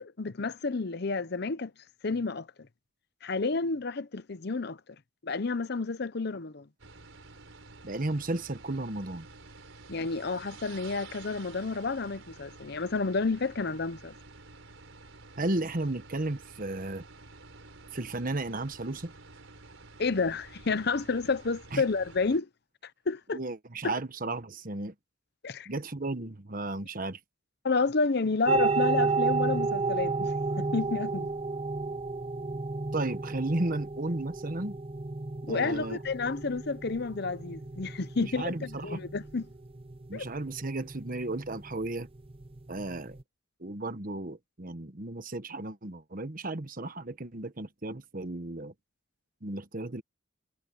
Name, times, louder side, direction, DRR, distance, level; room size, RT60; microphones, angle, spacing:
voice 1, 0.0-1.7 2.0-2.5 3.2-4.8 5.2-6.6 9.9-14.1 20.0-22.5 23.1-23.4 23.8-23.9 25.4-25.7 27.6-31.3 35.4-39.4 40.1-40.3, left 4 dB, 55° left, 0.8 m, -30 dB
sound 1, 6.8-22.4, right 3 dB, 85° right, 4.4 m, -50 dB
voice 2, 7.8-9.3 15.4-17.0 17.9-19.1 21.7-21.8 23.3-24.9 25.7-27.2 32.9-34.8 35.5-36.0 38.2-39.0 40.1-42.1 42.7-43.2 43.6-48.7 49.4-50.0, right 2 dB, 45° right, 1.3 m, -34 dB
sound 2, 28.5-43.2, right 4 dB, 30° right, 0.8 m, -32 dB
head